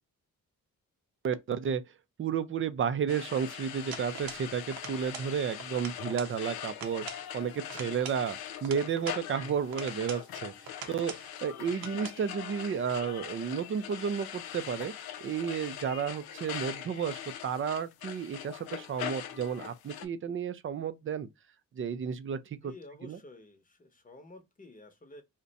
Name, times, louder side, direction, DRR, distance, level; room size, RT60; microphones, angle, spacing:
voice 1, 1.2-1.8 2.2-7.1 7.3-11.1 11.4-14.9 15.2-21.3 21.8-22.7 23.0-23.2, right 7 dB, 35° right, 0.4 m, -32 dB
sound 1, 3.1-20.1, left 10 dB, 80° left, 0.5 m, -42 dB
sound 2, 3.9-4.5 4.7-5.3 5.6-6.4 6.7-7.3 7.7-9.2 9.7-10.3 10.7-11.3 11.7-12.2, right 7 dB, 80° right, 0.6 m, -44 dB
voice 2, 22.6-25.2, left 2 dB, 25° left, 0.8 m, -51 dB
2.5 x 2.2 x 3.9 m
cardioid pair, 75°, 36 cm